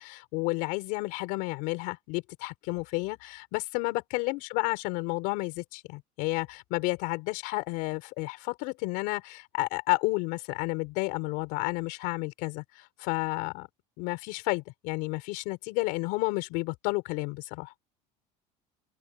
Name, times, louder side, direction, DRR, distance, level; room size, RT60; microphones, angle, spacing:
voice 1, 0.0-13.7 14.0-17.7, left 24 dB, 70° left, 5.8 m, -31 dB
cardioid pair, 160°, 15 cm